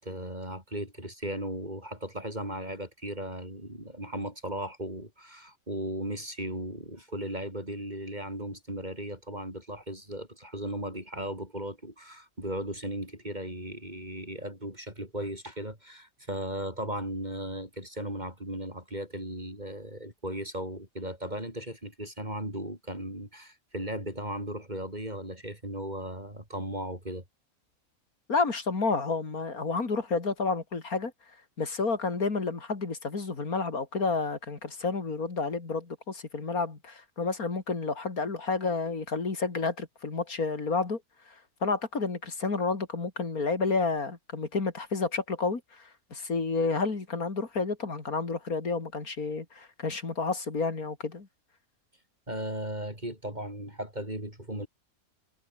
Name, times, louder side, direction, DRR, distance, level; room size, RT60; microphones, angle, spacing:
voice 1, 0.0-27.2 52.3-54.7, right 1 dB, 30° right, 6.8 m, -36 dB
voice 2, 28.3-31.1 31.6-41.0 41.3-41.4 41.6-51.3, left 4 dB, 80° left, 3.5 m, -30 dB
omnidirectional pair, 1.5 m